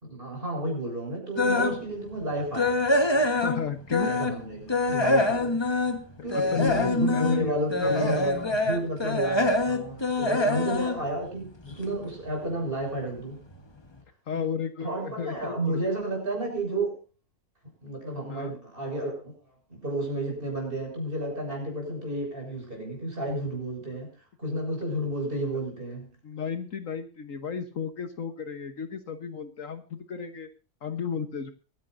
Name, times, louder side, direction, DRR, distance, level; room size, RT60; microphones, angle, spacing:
voice 1, 0.0-2.8 4.1-5.5 6.2-13.4 14.3-14.4 14.8-17.0 17.8-19.4 19.7-24.1 24.4-26.1, right 1 dB, 35° right, 1 dB, 6.9 m, -32 dB
sound 1, 1.3-1.8 2.2-4.4 4.7-11.9 12.3-12.5 13.0-13.1 13.5-13.6, left 2 dB, 20° left, 1.2 m, -25 dB
voice 2, 3.3-4.1 6.3-8.6 10.3-10.6 14.3-15.8 18.3-18.5 26.2-30.5 30.8-31.5, left 7 dB, 60° left, 9 dB, 1.5 m, -33 dB
24.0 x 10.5 x 2.6 m, 0.35 s
omnidirectional pair, 1.6 m